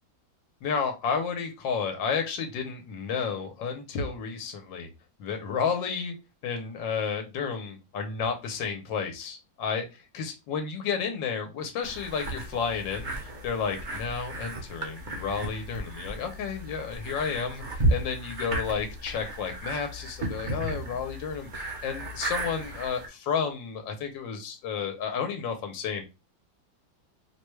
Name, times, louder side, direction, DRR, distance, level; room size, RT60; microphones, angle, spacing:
voice 1, 0.6-4.9 5.2-6.1 6.4-26.0, left 6 dB, 85° left, 4 dB, 1.5 m, -31 dB
sound 1, 11.8-23.1, right 1 dB, 45° right, 0.6 m, -34 dB
4.8 x 2.3 x 3.1 m, 0.26 s
omnidirectional pair, 2.0 m